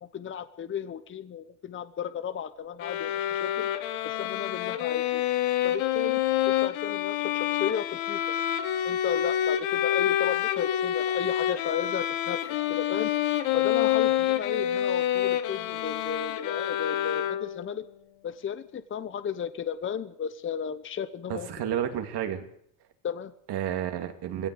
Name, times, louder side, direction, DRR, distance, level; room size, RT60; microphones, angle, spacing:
voice 1, 0.0-3.7 4.0-5.2 5.6-6.2 6.5-8.3 8.8-13.1 13.5-17.9 18.2-21.5 23.0-23.3, left 8 dB, 25° left, 13 dB, 0.9 m, -34 dB
sound 1, 2.8-17.8, left 11 dB, 70° left, 1.8 m, -27 dB
voice 2, 21.3-22.4 23.5-24.5, right 10 dB, 50° right, 6 dB, 2.9 m, -31 dB
20.5 x 17.5 x 8.0 m, 0.68 s
cardioid pair, 130°, 50 cm